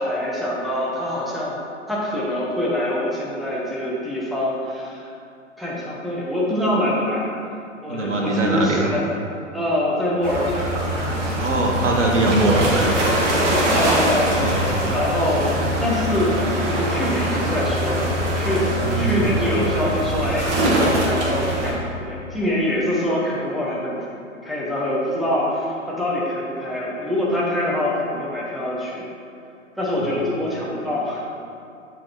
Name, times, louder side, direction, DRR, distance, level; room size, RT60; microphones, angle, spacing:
voice 1, 0.0-1.6 1.9-5.1 5.6-7.3 7.8-9.1 9.5-10.7 13.5-16.4 16.6-18.1 18.3-24.1 24.4-29.1 29.7-31.2, left 1 dB, ahead, -6 dB, 1.4 m, -25 dB
voice 2, 7.9-8.9 11.4-12.9 14.0-14.6 18.8-19.3, right 2 dB, 65° right, 0 dB, 1.6 m, -21 dB
sound 1, 10.2-21.7, right 1 dB, 35° right, 2.0 m, -22 dB
10.5 x 5.4 x 4.6 m, 2.5 s
figure-of-eight pair, 115°, 38 cm